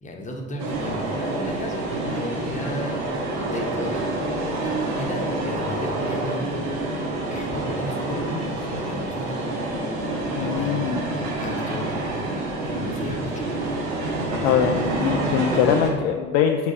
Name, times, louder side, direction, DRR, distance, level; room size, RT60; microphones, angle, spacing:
voice 1, 0.0-3.0 3.4-4.0 5.0-6.6 7.3-9.5 10.4-10.7 11.4-11.9 12.6-13.6, equal, 20° left, 1 dB, 1.0 m, -33 dB
sound 1, 0.6-15.9, right 2 dB, 50° right, 1.2 m, -27 dB
voice 2, 10.3-11.1 14.4-16.7, left 8 dB, 50° left, 4 dB, 0.4 m, -22 dB
7.3 x 3.4 x 4.1 m, 1.5 s
figure-of-eight pair, 55°, 35 cm